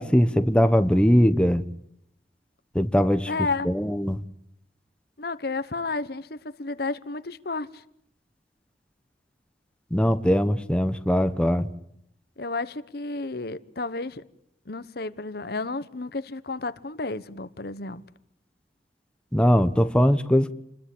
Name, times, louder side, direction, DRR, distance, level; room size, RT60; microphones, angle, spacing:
voice 1, 0.0-1.7 2.7-3.3 3.6-4.2 9.9-11.7 19.3-20.5, equal, 5° left, 1.0 m, -21 dB
voice 2, 3.3-3.7 5.2-7.8 12.4-14.2 14.7-18.0, left 3 dB, 60° left, 1.2 m, -32 dB
28.5 x 21.5 x 8.6 m
head